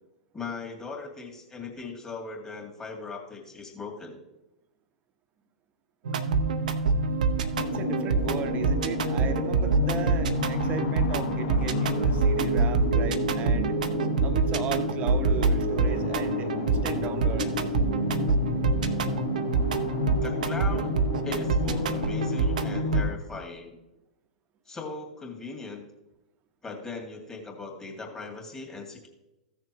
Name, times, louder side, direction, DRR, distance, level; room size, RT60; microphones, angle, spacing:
voice 1, 0.3-4.2 14.5-14.7 20.2-21.0 21.2-23.8 24.7-25.8 26.6-29.1, left 4 dB, 15° left, 1 dB, 2.3 m, -39 dB
sound 1, 6.1-23.0, right 5 dB, 70° right, 0.7 m, -26 dB
sound 2, 7.6-23.2, left 14 dB, 60° left, 0.5 m, -32 dB
voice 2, 7.7-13.8 14.2-17.6, right 7 dB, 35° right, 10 dB, 0.9 m, -36 dB
15.0 x 6.7 x 3.1 m, 0.96 s
hypercardioid pair, 105°, 4 cm